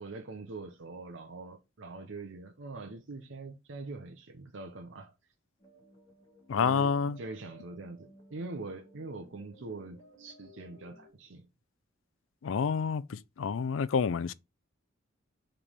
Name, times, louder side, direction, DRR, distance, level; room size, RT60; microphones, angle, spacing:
voice 1, 0.0-5.1 6.6-11.5, right 3 dB, 80° right, 0.7 m, -43 dB
sound 1, 5.6-11.1, right 1 dB, 25° left, 2.6 m, -58 dB
voice 2, 6.5-7.2 12.4-14.3, left 6 dB, 85° left, 0.4 m, -28 dB
5.0 x 3.4 x 5.5 m
head